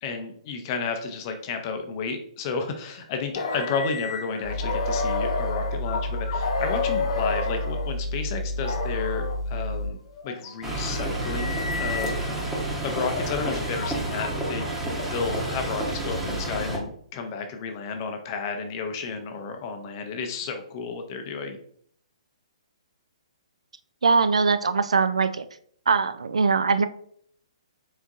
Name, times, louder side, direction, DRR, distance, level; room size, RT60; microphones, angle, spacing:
voice 1, 0.0-10.0 10.2-12.3 12.8-21.6, left 5 dB, 35° left, 5 dB, 0.7 m, -32 dB
sound 1, 3.3-7.9 8.6-9.4 10.1-12.5 13.0-15.4, left 4 dB, 55° left, 0.9 m, -31 dB
sound 2, 4.4-9.9, left 1 dB, 85° left, 0.7 m, -30 dB
sound 3, 10.6-16.8, right 1 dB, 10° right, 0.9 m, -30 dB
voice 2, 24.0-25.4 25.9-26.8, right 4 dB, 70° right, 11 dB, 0.3 m, -21 dB
4.1 x 3.5 x 2.4 m, 0.63 s
figure-of-eight pair, 125°, 3 cm